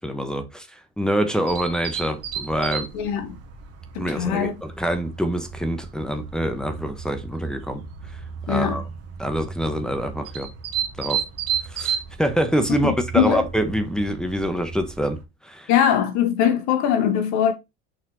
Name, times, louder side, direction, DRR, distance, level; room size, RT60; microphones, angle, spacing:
voice 1, 0.0-2.9 4.0-7.8 8.5-8.8 9.2-10.5 11.0-11.2 11.7-15.7, equal, ahead, 1.2 m, -25 dB
sound 1, 1.5-15.2, right 8 dB, 55° right, 1.9 m, -33 dB
voice 2, 2.9-3.4 3.9-4.5 8.5-8.8 12.8-13.5 15.7-17.5, left 9 dB, 75° left, 1.6 m, -21 dB
6.5 x 4.3 x 4.1 m
supercardioid pair, 100°, 29 cm